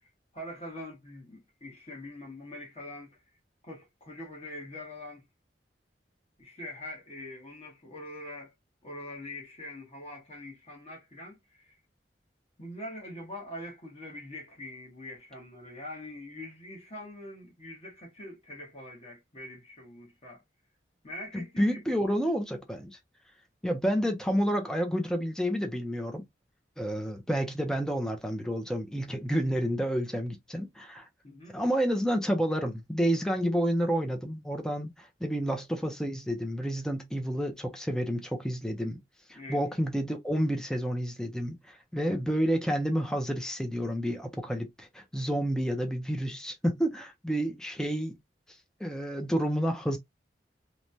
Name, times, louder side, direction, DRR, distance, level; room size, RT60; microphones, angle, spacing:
voice 1, 0.3-3.2 3.6-5.2 6.4-8.5 8.8-11.8 12.6-20.4 21.0-22.1 31.2-31.5 39.3-39.6, left 1 dB, 35° left, 1.2 m, -43 dB
voice 2, 21.3-23.0 23.6-26.2 26.8-31.1 31.5-39.0 39.3-48.1 48.8-50.0, equal, 5° left, 0.5 m, -30 dB
3.1 x 2.1 x 2.6 m
head